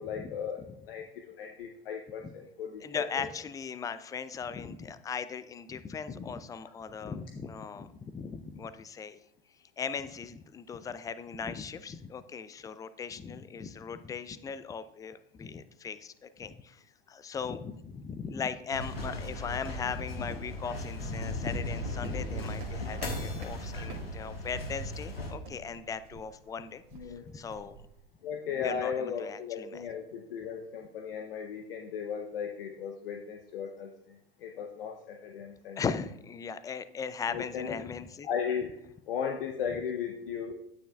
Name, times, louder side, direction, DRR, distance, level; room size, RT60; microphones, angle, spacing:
voice 1, 0.0-3.3 26.9-27.3 28.2-33.9 34.4-35.8 37.3-37.8 38.2-38.7 39.1-40.5, left 7 dB, 70° left, 3 dB, 0.8 m, -36 dB
voice 2, 2.8-9.2 9.8-16.8 17.1-27.8 28.6-29.8 35.8-38.3, left 6 dB, 10° left, 13 dB, 0.3 m, -38 dB
sound 1, 18.7-25.3, left 1 dB, 90° left, 1.4 m, -37 dB
sound 2, 19.7-28.0, right 4 dB, 55° right, 1.7 m, -51 dB
9.5 x 9.0 x 2.3 m, 0.76 s
hypercardioid pair, 85°, 29 cm